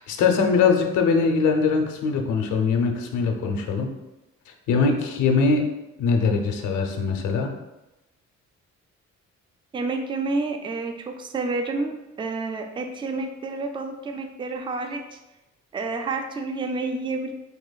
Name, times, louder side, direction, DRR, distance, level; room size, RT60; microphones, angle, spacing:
voice 1, 0.0-3.9 4.7-5.6 6.0-7.5, left 5 dB, 80° left, 3 dB, 0.6 m, -22 dB
voice 2, 9.7-15.2 15.7-17.3, right 3 dB, 15° right, 5 dB, 0.3 m, -29 dB
4.1 x 3.0 x 2.2 m, 1.0 s
cardioid pair, 90°, 30 cm